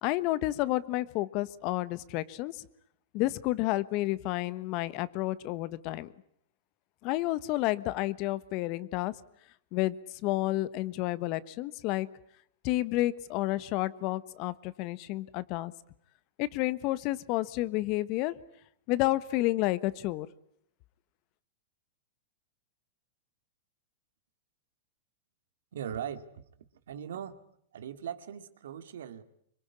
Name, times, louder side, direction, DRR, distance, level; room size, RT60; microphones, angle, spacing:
voice 1, 0.0-2.6 3.1-6.1 7.0-9.1 9.7-10.0 10.2-12.1 12.6-15.7 16.4-18.3 18.9-20.3, left 17 dB, 45° left, 17 dB, 1.3 m, -30 dB
voice 2, 25.7-26.3 26.9-27.4 27.7-29.2, right 9 dB, 80° right, 11 dB, 2.3 m, -39 dB
25.5 x 22.5 x 9.8 m, 0.70 s
hypercardioid pair, 130°, 0 cm